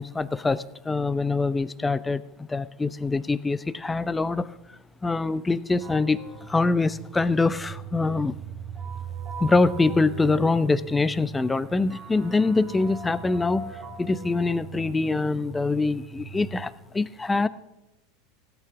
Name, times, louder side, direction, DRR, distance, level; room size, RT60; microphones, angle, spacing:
voice 1, 0.0-4.5 5.0-6.2 6.5-8.4 9.4-17.5, left 3 dB, 15° left, 18 dB, 0.6 m, -24 dB
sound 1, 5.8-16.6, right 6 dB, 35° right, 3.5 m, -39 dB
17.0 x 9.3 x 5.9 m, 0.94 s
figure-of-eight pair, 80°, 0 cm